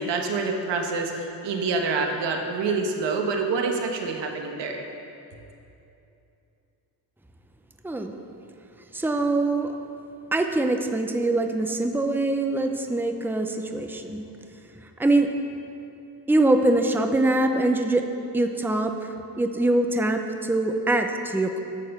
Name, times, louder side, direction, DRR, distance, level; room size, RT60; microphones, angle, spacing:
voice 1, 0.0-4.8, right 4 dB, 85° right, 3 dB, 1.3 m, -27 dB
voice 2, 8.9-9.7 10.3-14.3 15.0-15.3 16.3-18.0 18.3-18.9 19.4-21.6, right 2 dB, 5° right, 5 dB, 0.7 m, -23 dB
10.5 x 7.1 x 6.6 m, 2.8 s
cardioid pair, 85°, 42 cm